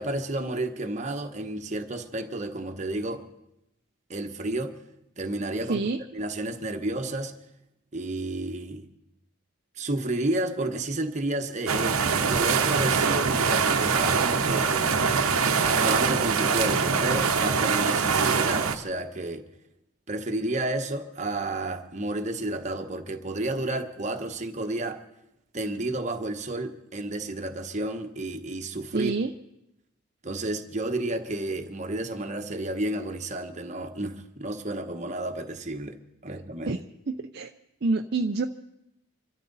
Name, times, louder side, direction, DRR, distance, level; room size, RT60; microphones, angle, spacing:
voice 1, 0.0-3.2 4.1-4.8 5.2-5.8 6.1-7.3 7.9-8.9 9.8-14.9 15.6-19.4 20.1-25.0 25.5-29.1 30.2-36.0 36.2-36.8, right 2 dB, 35° right, 1.1 m, -31 dB
sound 1, 11.7-18.8, right 5 dB, 85° right, 1.0 m, -23 dB
voice 2, 28.9-29.3 36.3-36.8 37.1-37.5 37.8-38.4, right 3 dB, 50° right, 0.5 m, -28 dB
26.0 x 13.0 x 4.1 m
head